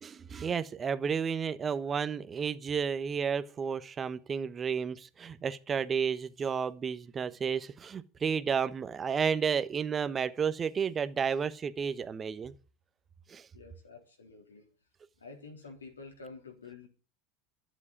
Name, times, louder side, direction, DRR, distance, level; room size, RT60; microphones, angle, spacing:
voice 1, 0.0-12.5 13.3-13.5, right 6 dB, 30° right, 1.1 m, -32 dB
voice 2, 13.5-14.7 15.2-16.9, left 4 dB, 90° left, 3.6 m, -49 dB
12.0 x 7.6 x 8.5 m
hypercardioid pair, 80°, 0 cm